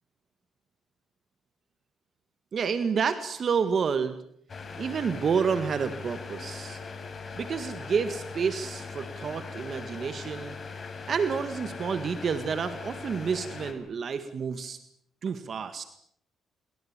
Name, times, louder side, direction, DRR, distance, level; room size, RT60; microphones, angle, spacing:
voice 1, 2.5-4.2 4.8-6.8 7.4-10.6 11.1-14.8 15.2-15.8, right 6 dB, 50° right, 10 dB, 1.9 m, -29 dB
sound 1, 4.5-13.7, left 4 dB, 40° left, 5.4 m, -40 dB
25.5 x 22.5 x 7.5 m, 0.68 s
cardioid pair, 90°, 0 cm